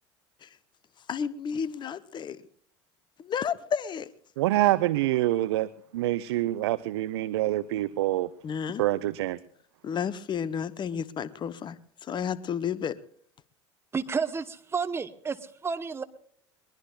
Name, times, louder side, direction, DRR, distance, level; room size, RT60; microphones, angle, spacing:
voice 1, 1.1-2.4 3.2-4.1 8.4-8.8 9.8-13.0, left 7 dB, 30° left, 17 dB, 0.8 m, -32 dB
voice 2, 4.4-8.3 8.8-9.4, right 15 dB, 60° right, 16 dB, 0.5 m, -26 dB
voice 3, 13.9-16.0, right 5 dB, 15° right, 11 dB, 1.0 m, -31 dB
22.5 x 21.5 x 2.4 m, 0.62 s
figure-of-eight pair, 70°, 15 cm